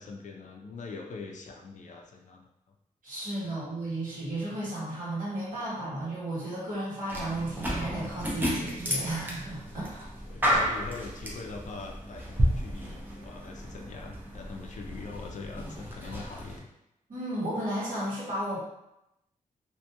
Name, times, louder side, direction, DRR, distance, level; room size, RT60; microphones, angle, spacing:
voice 1, 0.0-2.4 3.4-3.6 10.2-16.7, left 4 dB, 55° left, 2 dB, 0.4 m, -42 dB
voice 2, 3.0-10.1 17.1-18.6, right 1 dB, 65° right, -8 dB, 1.2 m, -34 dB
sound 1, 7.1-16.6, equal, 15° right, 0.5 m, -32 dB
2.5 x 2.2 x 2.8 m, 0.86 s
wide cardioid pair, 160°, 15 cm